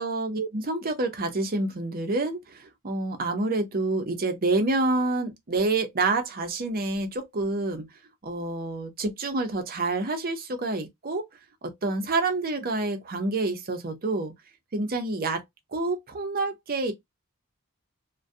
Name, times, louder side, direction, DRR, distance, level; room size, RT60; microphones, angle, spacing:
voice 1, 0.0-7.9 8.2-11.3 11.6-14.3 14.7-15.4 15.7-16.9, right 2 dB, 40° right, 0.6 m, -28 dB
2.3 x 2.2 x 2.5 m
head